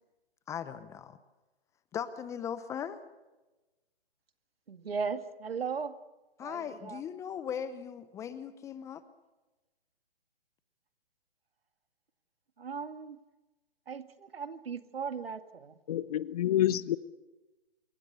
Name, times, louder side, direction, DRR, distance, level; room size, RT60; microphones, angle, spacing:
voice 1, 0.5-1.2 1.9-3.0 6.4-9.0, left 8 dB, 10° left, 0.7 m, -38 dB
voice 2, 4.7-6.0 6.4-7.0 12.6-13.2 13.9-15.7, right 5 dB, 75° right, 2.3 m, -37 dB
voice 3, 15.9-17.0, left 12 dB, 40° left, 1.0 m, -28 dB
27.0 x 23.5 x 6.9 m
hypercardioid pair, 140°, 30 cm